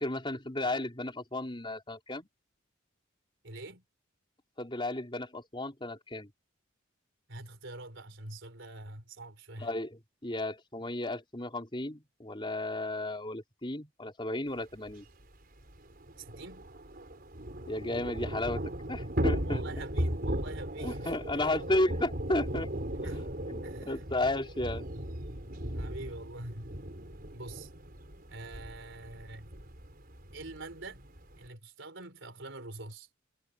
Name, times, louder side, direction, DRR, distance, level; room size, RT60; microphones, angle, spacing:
voice 1, 0.0-2.3 4.6-6.3 9.6-15.1 17.7-19.7 20.8-24.9, left 2 dB, 25° left, 4.0 m, -34 dB
voice 2, 3.4-3.8 7.3-9.7 16.2-16.7 19.5-21.4 23.0-23.3 23.6-24.1 25.7-26.7 27.3-27.7 28.3-29.6 30.3-31.0 31.4-33.1, right 2 dB, 60° right, 4.4 m, -45 dB
Thunder / Rain, 14.9-15.0 15.2-15.3 15.6-31.5, right 1 dB, 45° right, 5.1 m, -37 dB
head